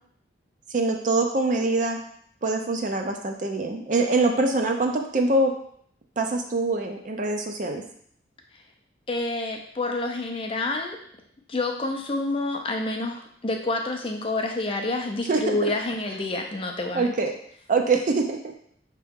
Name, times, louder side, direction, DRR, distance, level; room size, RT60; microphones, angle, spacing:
voice 1, 0.7-2.0 2.4-5.5 6.2-7.8 15.3-15.7 16.9-17.3 17.7-18.4, right 3 dB, 40° right, 3 dB, 0.4 m, -24 dB
voice 2, 9.1-11.0 11.5-17.1, left 2 dB, 30° left, 2 dB, 0.4 m, -28 dB
4.5 x 2.9 x 3.6 m, 0.63 s
head